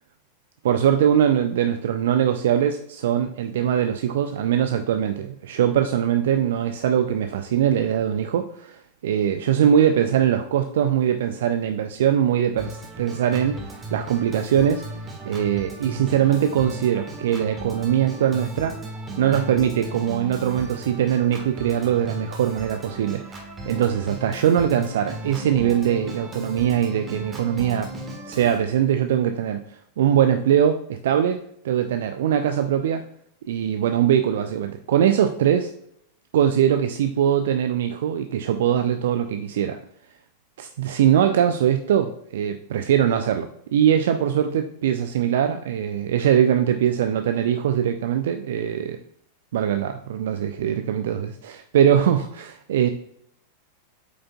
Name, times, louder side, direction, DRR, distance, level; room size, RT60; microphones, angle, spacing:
voice 1, 0.6-14.8 15.2-18.8 19.2-27.9 28.3-33.0 33.5-35.7 36.3-39.8 40.6-49.0 49.5-52.9, right 9 dB, 60° right, 7 dB, 0.4 m, -22 dB
Organ, 12.6-28.6, right 1 dB, 20° right, 1.5 m, -36 dB
8.1 x 5.0 x 2.3 m, 0.69 s
figure-of-eight pair, 90°, 0 cm